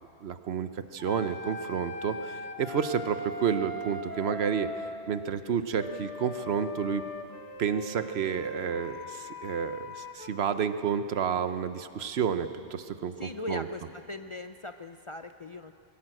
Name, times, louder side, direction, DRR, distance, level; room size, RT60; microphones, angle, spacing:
voice 1, 0.2-7.0 7.6-13.7, right 7 dB, 70° right, 11 dB, 1.0 m, -30 dB
sound 1, 1.0-5.0 5.7-10.3, left 2 dB, 75° left, 1.7 m, -40 dB
voice 2, 13.2-13.8 14.1-15.7, left 2 dB, 40° left, 8 dB, 0.5 m, -39 dB
21.5 x 17.5 x 7.6 m, 2.5 s
omnidirectional pair, 1.1 m